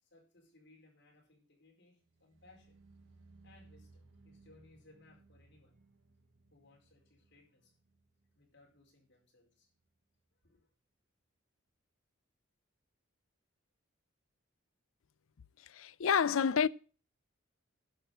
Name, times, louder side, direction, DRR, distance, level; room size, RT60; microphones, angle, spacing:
voice 1, 0.0-2.8 3.4-5.8 6.5-7.7 8.3-9.7 10.4-10.7, left 2 dB, 60° left, 4.7 m, -64 dB
sound 1, 2.0-9.1 9.4-9.9 10.2-10.3, right 3 dB, 65° right, 1.6 m, -63 dB
voice 2, 15.6-16.7, left 7 dB, 85° left, 0.5 m, -29 dB
11.5 x 6.2 x 8.0 m
head